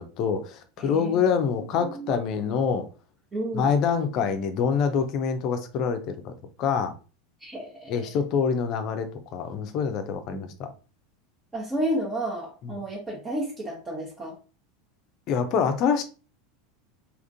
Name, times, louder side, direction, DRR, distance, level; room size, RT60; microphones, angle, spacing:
voice 1, 0.0-2.9 3.5-6.3 6.6-6.9 7.9-10.7 15.3-16.0, left 6 dB, 45° left, 0.6 m, -25 dB
voice 2, 0.8-1.2 1.8-2.1 3.3-3.7 7.4-8.2 10.3-10.5 11.5-14.4, right 1 dB, 15° right, 1.0 m, -32 dB
3.5 x 2.5 x 2.5 m
figure-of-eight pair, 80°, 0 cm